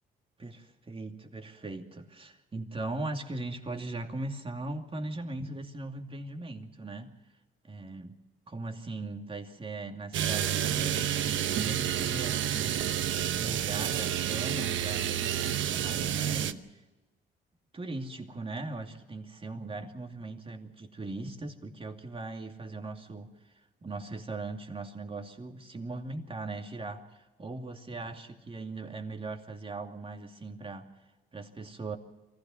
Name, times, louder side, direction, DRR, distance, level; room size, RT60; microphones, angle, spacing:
voice 1, 0.4-7.1 7.6-8.2 8.5-12.9 13.3-16.8 17.7-23.3 23.5-30.9 31.3-32.0, right 2 dB, 25° right, 4 dB, 2.7 m, -39 dB
sound 1, 10.1-16.5, right 10 dB, 75° right, 1.0 m, -29 dB
24.0 x 16.0 x 7.3 m, 1.1 s
cardioid pair, 90°, 20 cm